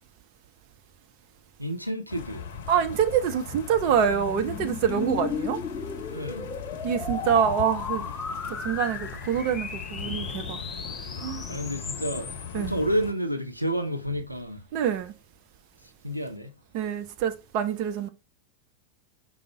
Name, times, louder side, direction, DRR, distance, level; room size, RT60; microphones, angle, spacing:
voice 1, 1.6-2.4 6.1-6.4 10.6-10.9 11.5-12.3 12.5-14.6 16.0-16.6, equal, 90° right, 0.6 m, -30 dB
sound 1, 2.1-13.1, left 7 dB, 55° left, 0.7 m, -39 dB
voice 2, 2.7-5.6 6.8-8.1 8.5-10.6 11.2-11.4 12.5-12.7 14.7-15.1 16.7-18.1, right 8 dB, 45° right, 0.6 m, -26 dB
sound 2, 2.9-12.6, left 5 dB, 20° left, 0.5 m, -36 dB
5.2 x 2.1 x 4.5 m
figure-of-eight pair, 90°, 0 cm